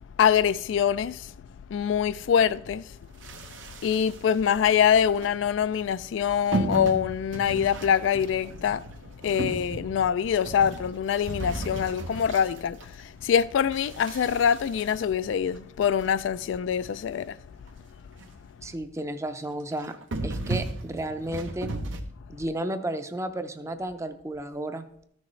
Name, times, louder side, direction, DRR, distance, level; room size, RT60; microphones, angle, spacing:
voice 1, 0.2-1.3 1.7-3.0 3.8-8.8 9.2-17.4, left 8 dB, 70° left, 0.3 m, -24 dB
sound 1, 3.2-4.5 5.0-5.3 6.5-13.2 13.7-15.8 16.3-16.4 16.6-16.7 17.2-17.3 17.6-17.8 18.0-18.5 18.8-19.0 19.7-22.0, right 2 dB, 85° right, 1.0 m, -35 dB
voice 2, 18.6-19.9 20.2-21.7 22.3-24.9, right 1 dB, 15° right, 0.5 m, -32 dB
13.5 x 6.2 x 3.2 m
head